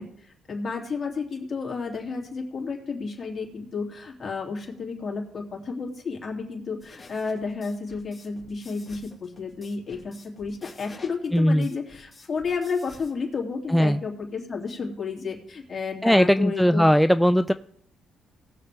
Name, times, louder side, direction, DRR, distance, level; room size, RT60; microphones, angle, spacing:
voice 1, 0.0-16.9, left 4 dB, 35° left, 0 dB, 2.8 m, -32 dB
sound 1, 6.8-13.1, left 3 dB, 20° left, 2.2 m, -50 dB
voice 2, 11.3-11.7 13.7-14.0 16.0-17.5, equal, ahead, 11 dB, 0.3 m, -19 dB
19.0 x 6.8 x 3.5 m, 0.67 s
cardioid pair, 90°, 0 cm